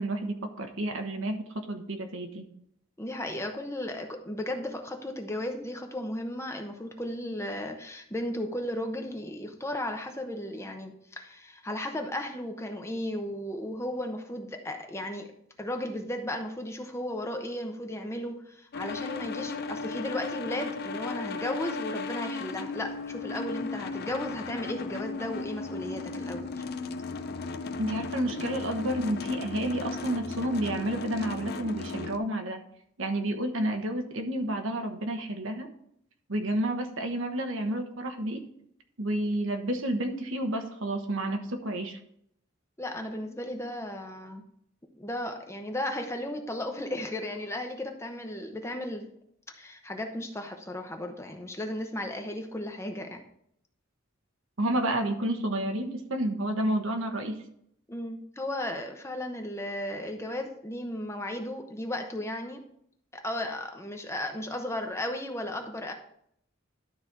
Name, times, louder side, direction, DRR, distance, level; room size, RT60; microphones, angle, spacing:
voice 1, 0.0-2.4 27.8-32.6 33.0-35.7 36.3-38.4 39.0-42.0 54.6-57.4, right 1 dB, 70° right, 5 dB, 1.2 m, -30 dB
voice 2, 3.0-15.3 15.6-26.6 42.8-44.4 45.0-49.1 49.5-53.2 57.9-62.6 63.1-65.9, left 1 dB, 15° left, 4 dB, 0.9 m, -35 dB
sound 1, 18.7-32.2, left 4 dB, 50° left, 0.6 m, -36 dB
12.0 x 4.2 x 4.7 m, 0.71 s
head